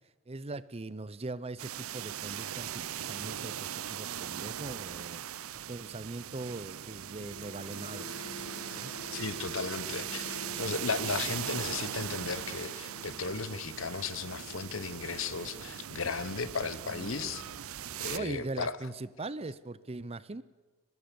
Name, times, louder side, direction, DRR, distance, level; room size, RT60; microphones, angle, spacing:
voice 1, 0.3-8.1 8.7-8.9 9.8-10.0 16.6-17.4 18.1-20.4, right 2 dB, 30° right, 17 dB, 0.6 m, -41 dB
sound 1, 1.6-18.2, right 10 dB, 75° right, 0.6 m, -40 dB
sound 2, 7.2-18.7, left 1 dB, 80° left, 2.0 m, -49 dB
voice 2, 9.1-17.4 18.0-18.8, left 4 dB, 65° left, 15 dB, 1.0 m, -35 dB
23.5 x 20.5 x 7.0 m, 1.3 s
head